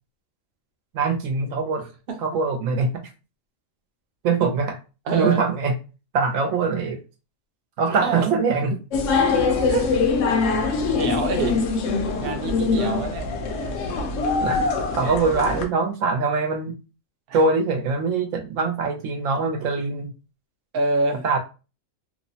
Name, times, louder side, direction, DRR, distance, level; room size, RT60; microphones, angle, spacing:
voice 1, 0.9-1.9 2.2-3.1 4.2-4.8 5.1-5.7 6.1-7.0 7.8-8.8 14.4-14.7 14.9-16.8 17.3-20.1 21.2-21.4, right 4 dB, 80° right, 1.0 m, -23 dB
voice 2, 5.1-5.4 7.9-8.3 9.7-10.0 10.9-11.6 12.2-13.3 13.6-14.0 17.3-17.4 20.7-21.2, right 2 dB, 55° right, 0.7 m, -26 dB
sound 1, 8.9-15.7, left 4 dB, 75° left, 0.9 m, -23 dB
3.0 x 2.0 x 2.7 m
omnidirectional pair, 1.3 m